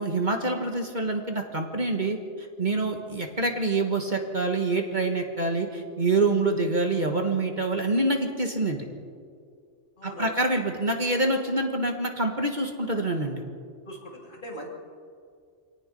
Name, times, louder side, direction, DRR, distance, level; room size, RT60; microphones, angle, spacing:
voice 1, 0.0-8.9 10.0-13.4, right 2 dB, 40° right, 3 dB, 1.7 m, -26 dB
voice 2, 10.0-10.4 13.9-14.7, equal, 40° left, -1 dB, 3.5 m, -40 dB
25.5 x 18.5 x 5.4 m, 2.2 s
omnidirectional pair, 1.2 m